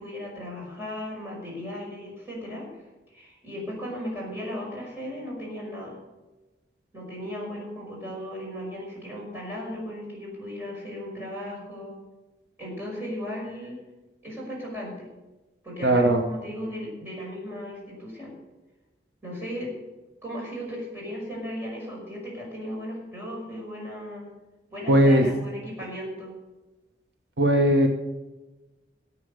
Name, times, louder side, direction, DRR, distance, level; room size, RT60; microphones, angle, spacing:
voice 1, 0.0-2.7 3.1-6.0 6.9-12.0 12.6-13.8 14.2-15.1 15.6-18.3 19.2-19.7 20.2-24.3 24.7-26.4, equal, 10° right, -4 dB, 5.7 m, -36 dB
voice 2, 15.8-16.2 24.9-25.3 27.4-27.9, equal, 65° right, 3 dB, 1.2 m, -18 dB
14.0 x 8.8 x 6.7 m, 1.1 s
head